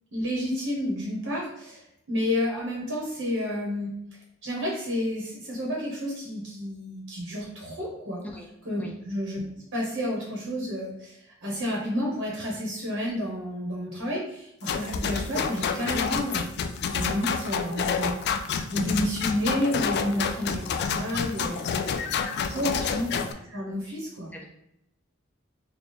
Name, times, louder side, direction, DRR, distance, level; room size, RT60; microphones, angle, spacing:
voice 1, 0.1-3.9 4.4-8.2 8.6-9.4 9.7-16.5 16.9-18.2 18.7-21.7 22.5-24.3, equal, 75° right, -3 dB, 1.1 m, -30 dB
sound 1, 14.6-23.3, left 6 dB, 55° left, 0.3 m, -28 dB
voice 2, 22.5-22.9 24.3-24.4, left 1 dB, 10° left, -1 dB, 0.6 m, -42 dB
3.4 x 2.2 x 4.2 m, 0.81 s
head